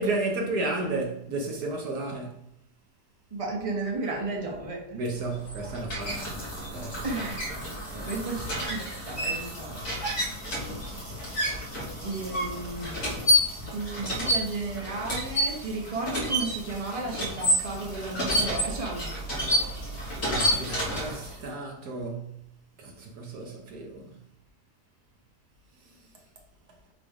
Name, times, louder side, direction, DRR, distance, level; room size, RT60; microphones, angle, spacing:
voice 1, 0.0-2.4 4.9-6.4 6.7-7.3 7.9-8.1 10.9-11.0 19.7-19.8 20.2-22.4 22.8-24.1, right 2 dB, 70° right, 1.5 m, -33 dB
voice 2, 3.3-5.0 7.0-7.4 7.9-8.4 8.6-9.8 12.0-13.0 13.6-19.1, right 3 dB, 20° right, 1.3 m, -33 dB
sound 1, 5.2-21.5, equal, 60° left, 2.6 m, -30 dB
5.9 x 3.4 x 5.0 m
omnidirectional pair, 1.8 m